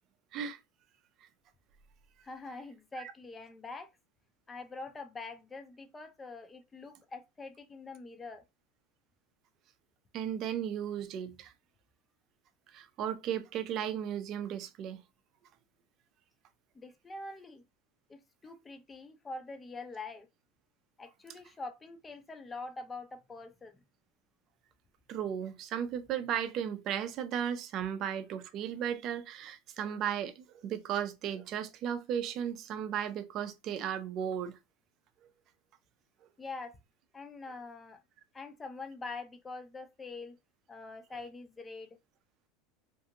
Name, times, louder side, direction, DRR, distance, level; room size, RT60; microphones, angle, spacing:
voice 1, 2.2-3.9 4.5-8.4 16.7-17.6 18.1-20.3 21.0-23.8 36.4-36.8 37.1-38.0 38.3-40.4 40.7-42.0, left 3 dB, 15° left, 0.5 m, -44 dB
voice 2, 10.1-11.5 12.7-15.0 25.1-34.6, right 9 dB, 45° right, 0.5 m, -35 dB
2.6 x 2.4 x 2.8 m
supercardioid pair, 125°, 0 cm